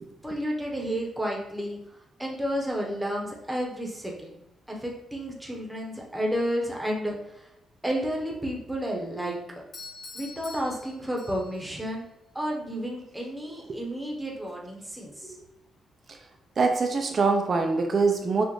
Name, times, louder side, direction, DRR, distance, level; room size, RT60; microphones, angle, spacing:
voice 1, 0.2-1.8 2.2-4.3 4.7-7.2 7.8-9.4 10.1-12.1 12.3-15.4, equal, 5° right, -1 dB, 0.9 m, -31 dB
Doorbell, 9.7-11.7, left 4 dB, 55° left, 1.2 m, -45 dB
voice 2, 16.6-18.4, right 4 dB, 40° right, 4 dB, 0.5 m, -24 dB
6.1 x 2.5 x 3.1 m, 0.87 s
cardioid pair, 130°, 0 cm